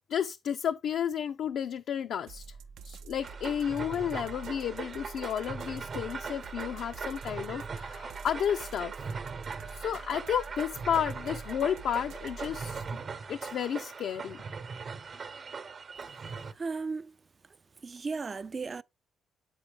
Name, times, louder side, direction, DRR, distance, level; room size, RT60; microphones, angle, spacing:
voice 1, 0.1-2.4 2.8-8.9 9.7-13.0 13.3-14.4, left 9 dB, 70° left, 0.4 m, -32 dB
sound 1, 2.3-12.9, right 5 dB, 80° right, 0.6 m, -47 dB
sound 2, 3.2-16.5, right 5 dB, 50° right, 0.9 m, -40 dB
voice 2, 16.6-17.1 17.8-18.8, right 4 dB, 35° right, 0.3 m, -35 dB
7.7 x 5.4 x 3.4 m
cardioid pair, 90°, 0 cm